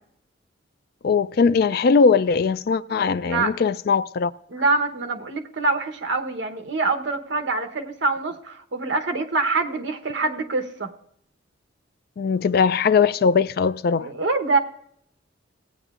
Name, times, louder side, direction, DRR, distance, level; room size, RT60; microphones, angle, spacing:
voice 1, 1.0-4.3 12.2-14.1, left 5 dB, 50° left, 0.3 m, -20 dB
voice 2, 4.5-10.9 14.0-14.6, right 3 dB, 65° right, 1.0 m, -25 dB
17.0 x 9.0 x 2.5 m
head